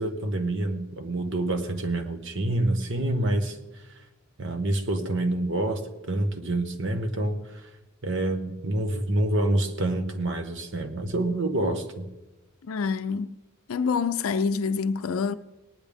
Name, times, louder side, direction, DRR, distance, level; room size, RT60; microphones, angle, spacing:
voice 1, 0.0-3.6 4.4-5.8 6.1-7.4 8.0-12.1, right 1 dB, 60° right, 1.2 m, -27 dB
voice 2, 12.7-13.3 13.7-15.3, left 5 dB, 80° left, 0.4 m, -26 dB
19.0 x 10.5 x 3.5 m
head